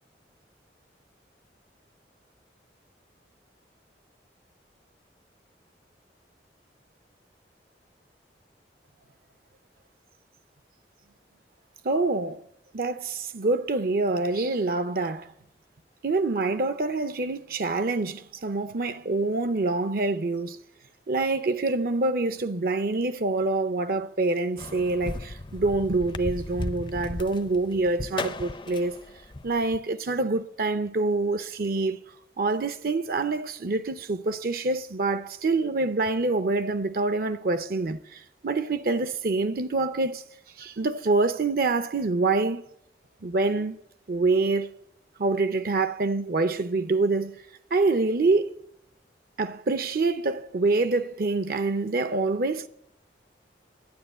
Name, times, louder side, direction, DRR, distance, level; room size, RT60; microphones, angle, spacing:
voice 1, 11.8-12.4 12.7-15.3 16.0-20.6 21.1-29.0 29.4-32.0 32.4-40.2 40.6-42.6 43.2-43.8 44.1-44.7 45.2-47.3 47.7-48.5 49.4-52.7, right 3 dB, 55° right, 0.6 m, -26 dB
sound 1, 24.6-29.8, left 2 dB, 25° left, 0.5 m, -36 dB
11.5 x 9.6 x 7.9 m
head